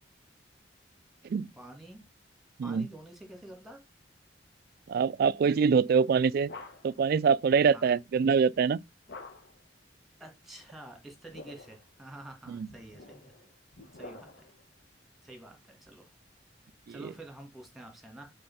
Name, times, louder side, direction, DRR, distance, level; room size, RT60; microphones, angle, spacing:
voice 1, 1.6-2.0 2.6-3.8 7.7-7.9 10.2-13.3 14.0-14.3 15.2-16.1 16.9-18.3, right 1 dB, ahead, 2.0 m, -48 dB
voice 2, 4.9-6.5 6.8-8.8 12.5-12.7 17.0-17.1, right 6 dB, 55° right, 0.3 m, -24 dB
sound 1, 6.4-7.1 9.1-9.7 11.1-11.9 12.7-14.6, left 3 dB, 65° left, 1.2 m, -48 dB
5.5 x 4.3 x 5.4 m
head